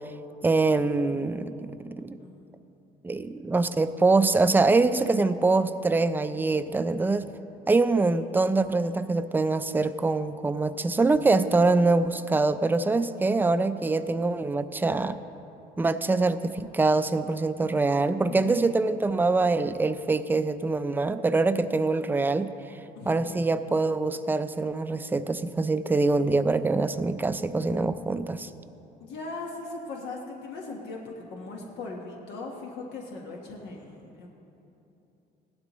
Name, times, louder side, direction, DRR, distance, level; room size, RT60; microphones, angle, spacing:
voice 1, 0.4-2.2 3.0-7.3 7.7-15.2 15.8-22.5 23.1-28.5, right 3 dB, 10° right, 11 dB, 0.4 m, -24 dB
voice 2, 2.2-2.5 18.3-18.9 23.0-23.5 29.0-34.3, left 3 dB, 85° left, -1 dB, 1.3 m, -39 dB
16.5 x 12.0 x 3.0 m, 2.9 s
cardioid pair, 110°, 17 cm